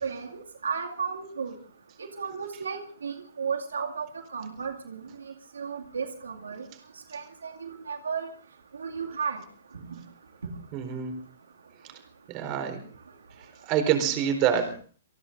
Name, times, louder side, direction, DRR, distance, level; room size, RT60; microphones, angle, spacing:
voice 1, 0.0-1.5 2.0-6.7 7.1-8.3 8.7-9.4 10.4-10.5, right 6 dB, 90° right, 2 dB, 2.3 m, -34 dB
voice 2, 10.7-11.1 12.3-12.8 13.6-14.8, right 9 dB, 35° right, 6 dB, 4.2 m, -26 dB
27.0 x 19.0 x 2.6 m, 0.43 s
hypercardioid pair, 135°, 0 cm